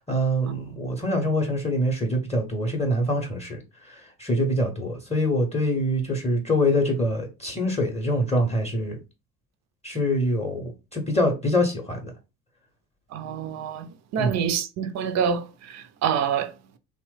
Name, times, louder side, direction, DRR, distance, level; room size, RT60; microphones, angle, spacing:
voice 1, 0.1-3.6 3.8-9.0 9.8-12.1 14.2-14.4, equal, 15° left, 0.7 m, -25 dB
voice 2, 13.1-16.5, right 7 dB, 40° right, 0.4 m, -27 dB
2.9 x 2.1 x 3.2 m
hypercardioid pair, 60°, 46 cm